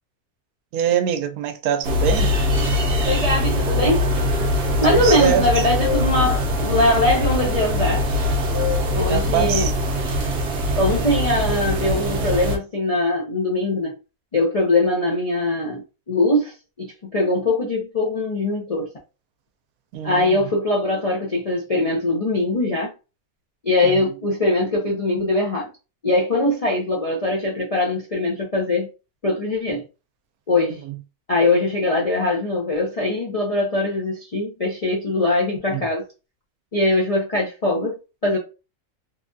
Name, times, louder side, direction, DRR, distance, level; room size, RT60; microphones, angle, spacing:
voice 1, 0.7-2.3 4.9-5.6 9.1-9.7 19.9-20.4 23.8-23.9 35.7-35.9, right 9 dB, 75° right, 1.0 m, -23 dB
sound 1, 1.8-12.6, left 1 dB, 55° right, 0.8 m, -22 dB
voice 2, 3.0-4.1 4.8-8.0 8.9-9.7 10.8-13.9 14.3-18.9 20.0-22.9 23.6-25.7 26.0-28.9 29.2-29.8 30.5-30.8 31.3-36.0 36.7-38.4, left 2 dB, 65° left, 0.3 m, -21 dB
3.2 x 2.2 x 2.6 m
omnidirectional pair, 1.6 m